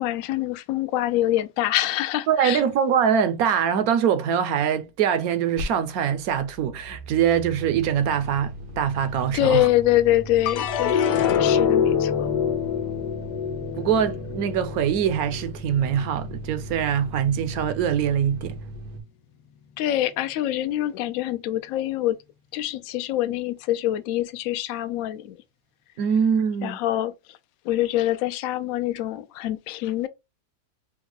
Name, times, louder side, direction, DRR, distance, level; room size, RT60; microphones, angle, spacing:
voice 1, 0.0-2.6 9.3-11.1 11.4-12.3 19.8-22.2 22.5-25.4 26.6-27.4 27.6-30.1, left 14 dB, 70° left, 0.8 m, -25 dB
voice 2, 2.3-9.7 13.8-18.6 26.0-26.8, right 8 dB, 70° right, 1.0 m, -23 dB
sound 1, 5.6-5.7 5.9-19.0, right 1 dB, 85° right, 1.5 m, -38 dB
sound 2, 10.5-16.9 17.3-18.0, left 8 dB, 90° left, 1.3 m, -26 dB
4.4 x 2.2 x 3.9 m
omnidirectional pair, 1.8 m